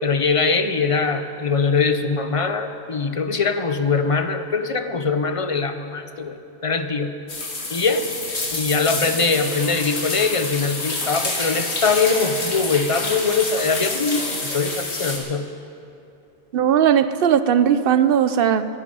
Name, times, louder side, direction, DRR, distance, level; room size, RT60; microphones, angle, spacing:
voice 1, 0.0-7.2 7.7-8.1 8.5-15.5, left 4 dB, 35° left, 9 dB, 0.6 m, -22 dB
sound 1, 7.3-15.2, left 2 dB, 85° left, 2.1 m, -28 dB
voice 2, 16.5-18.7, right 9 dB, 60° right, 12 dB, 0.8 m, -18 dB
10.5 x 9.6 x 9.5 m, 2.7 s
omnidirectional pair, 1.1 m